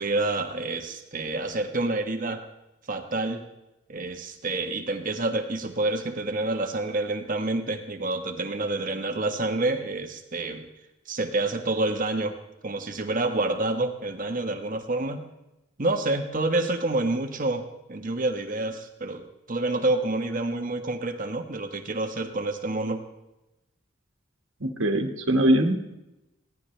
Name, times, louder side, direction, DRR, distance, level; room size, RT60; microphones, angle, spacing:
voice 1, 0.0-2.4 2.9-3.4 3.9-10.7 11.1-12.4 12.6-15.2 15.8-23.0, right 2 dB, 45° right, 5 dB, 1.4 m, -28 dB
voice 2, 24.6-25.9, right 1 dB, 85° right, 3 dB, 1.8 m, -22 dB
22.5 x 17.0 x 3.3 m, 0.95 s
head